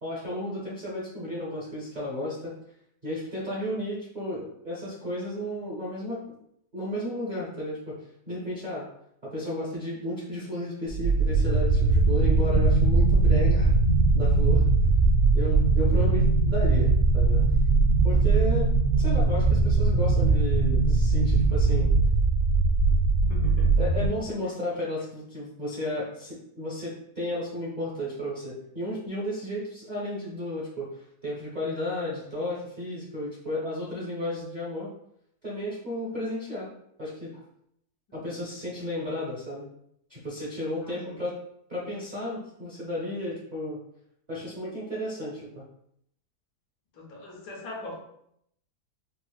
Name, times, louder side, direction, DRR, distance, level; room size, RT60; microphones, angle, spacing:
voice 1, 0.0-2.6 3.0-6.2 6.7-7.9 8.3-8.9 9.2-13.7 14.1-14.7 15.3-17.5 18.0-18.7 19.0-21.9 23.8-30.9 31.2-34.9 35.4-36.7 37.0-37.4 38.1-39.7 40.1-41.3 41.7-43.8 44.3-45.6, left 1 dB, 45° right, -7 dB, 0.6 m, -33 dB
sound 1, 10.9-24.1, right 3 dB, 70° right, 1.3 m, -21 dB
voice 2, 23.3-23.8 40.8-41.2 46.9-48.0, left 2 dB, 85° left, -1 dB, 1.4 m, -41 dB
4.9 x 2.0 x 2.3 m, 0.73 s
omnidirectional pair, 1.7 m